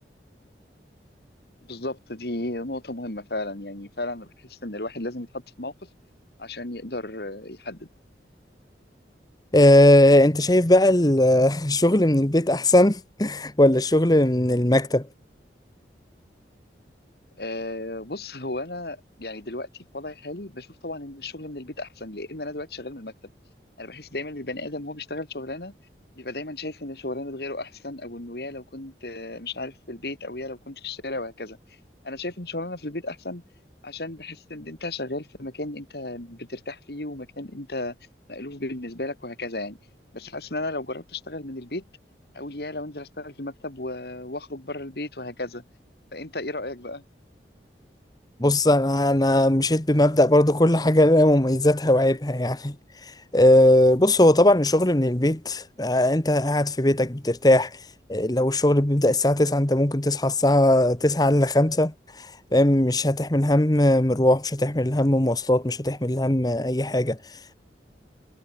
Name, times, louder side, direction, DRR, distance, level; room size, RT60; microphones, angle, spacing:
voice 1, 1.7-5.9 6.4-7.9 17.4-23.3 23.8-25.7 26.1-31.6 32.0-33.4 33.8-38.0 38.3-39.8 40.1-41.8 42.3-45.6 46.1-47.0, left 2 dB, 60° left, 2.7 m, -34 dB
voice 2, 9.5-15.0 48.4-52.7 53.0-57.8 58.1-67.6, left 1 dB, 20° left, 1.4 m, -19 dB
head